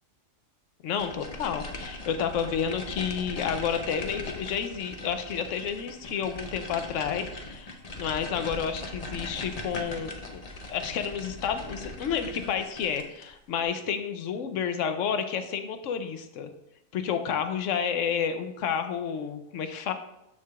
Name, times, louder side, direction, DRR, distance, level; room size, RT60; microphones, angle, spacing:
voice 1, 0.8-10.4 10.7-16.5 16.9-19.9, left 7 dB, 75° left, 8 dB, 1.0 m, -30 dB
sound 1, 1.0-13.3, left 2 dB, 40° left, 0.7 m, -40 dB
13.0 x 4.6 x 2.4 m, 0.88 s
omnidirectional pair, 1.4 m